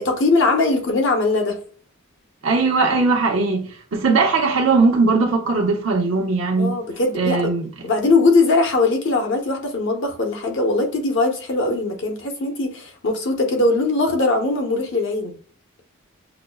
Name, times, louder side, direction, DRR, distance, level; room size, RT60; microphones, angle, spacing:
voice 1, 0.0-1.6 6.6-7.5 7.8-15.3, left 3 dB, 55° left, 0.8 m, -20 dB
voice 2, 2.4-6.7 7.1-7.7, right 3 dB, 70° right, 0.9 m, -19 dB
5.8 x 2.0 x 2.3 m
head